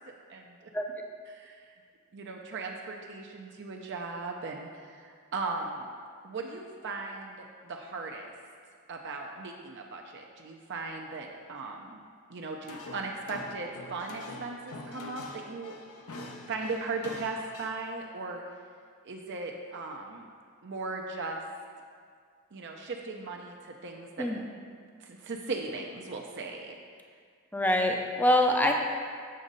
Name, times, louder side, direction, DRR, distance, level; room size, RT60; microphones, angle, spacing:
voice 1, 0.1-0.6 1.3-1.8 2.1-5.9 6.2-8.3 8.9-12.0 12.3-15.8 16.5-18.4 19.0-20.2 20.6-21.4 22.5-24.3 25.0-26.8, right 3 dB, 55° right, 1 dB, 0.5 m, -38 dB
sound 1, 12.6-17.7, left 2 dB, 75° left, 0.7 m, -45 dB
voice 2, 27.5-28.7, left 1 dB, 10° left, 2 dB, 0.5 m, -24 dB
7.6 x 6.3 x 3.9 m, 2.1 s
head